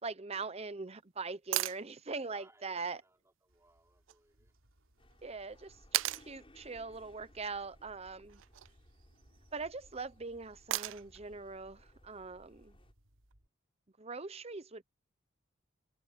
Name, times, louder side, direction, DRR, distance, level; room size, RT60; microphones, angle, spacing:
voice 1, 0.0-3.0 5.2-8.4 9.5-12.8 14.0-14.8, right 4 dB, 30° right, 0.8 m, -42 dB
sound 1, 1.5-1.8 4.1-4.2 5.9-6.3 8.3-8.7 10.7-11.2 13.3-13.4, right 16 dB, 60° right, 0.3 m, -34 dB
voice 2, 2.3-4.5, right 2 dB, 15° right, 4.6 m, -67 dB
Train, 3.5-13.5, right 1 dB, 75° right, 3.3 m, -69 dB
sound 2, 5.0-12.9, left 1 dB, 25° left, 7.3 m, -62 dB
head